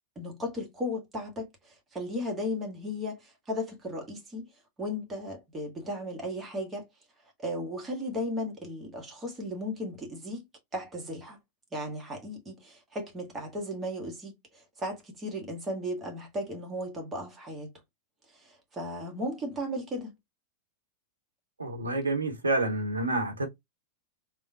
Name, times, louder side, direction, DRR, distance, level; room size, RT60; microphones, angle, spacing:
voice 1, 0.2-4.5 4.8-6.9 7.4-10.4 10.7-11.4 11.7-17.7 18.3-20.1, left 1 dB, 15° right, 1.2 m, -35 dB
voice 2, 21.6-23.5, right 2 dB, 75° right, 0.9 m, -28 dB
3.4 x 2.3 x 2.6 m
figure-of-eight pair, 90°, 0 cm